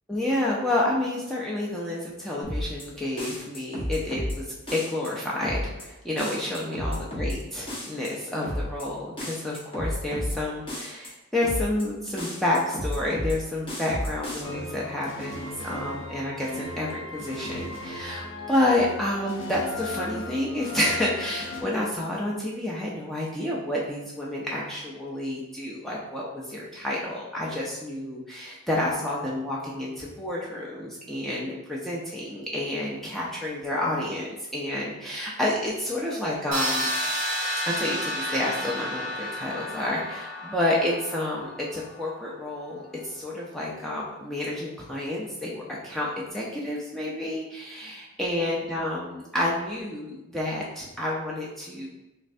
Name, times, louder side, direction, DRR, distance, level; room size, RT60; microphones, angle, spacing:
voice 1, 0.1-36.9 37.7-51.9, left 1 dB, ahead, -5 dB, 0.4 m, -29 dB
sound 1, 2.4-2.8 3.2-4.4 4.7-5.1 5.4-5.8 6.2-7.4 7.7-8.1 8.4-8.8 9.2-10.4 10.7-11.1 11.4-11.8 12.2-13.4 13.7-14.4, equal, 25° left, 0.8 m, -31 dB
sound 2, 14.4-21.6, left 2 dB, 70° left, 0.6 m, -37 dB
sound 3, 36.5-42.3, equal, 40° right, 1.1 m, -31 dB
3.2 x 3.2 x 2.6 m, 0.97 s
head